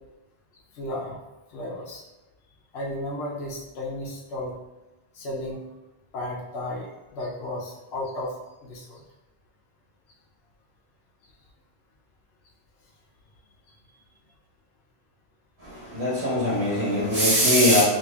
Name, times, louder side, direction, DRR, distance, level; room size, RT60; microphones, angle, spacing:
voice 1, 0.7-1.2 1.5-2.0 2.7-4.6 5.1-5.6 6.1-8.3 8.6-9.0, left 1 dB, 85° left, -3 dB, 0.9 m, -33 dB
voice 2, 15.9-17.8, equal, 80° right, -9 dB, 1.6 m, -21 dB
4.9 x 2.4 x 2.2 m, 1.0 s
omnidirectional pair, 1.1 m